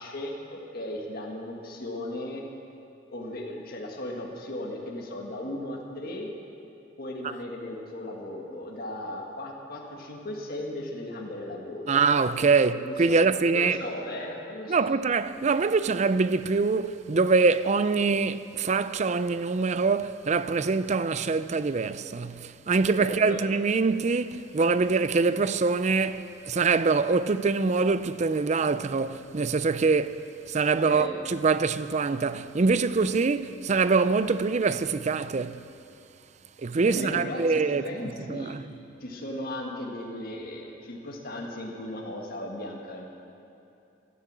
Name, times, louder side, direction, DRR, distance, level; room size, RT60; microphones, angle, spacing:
voice 1, 0.0-2.4 3.1-6.3 7.0-12.0 12.7-14.9 23.0-23.4 30.6-31.2 36.8-38.6 39.0-43.1, left 1 dB, 50° left, 1.6 m, -36 dB
voice 2, 11.9-13.8 14.7-35.6 36.6-37.8 38.3-38.6, right 4 dB, 35° right, 0.4 m, -24 dB
16.0 x 11.5 x 7.4 m
head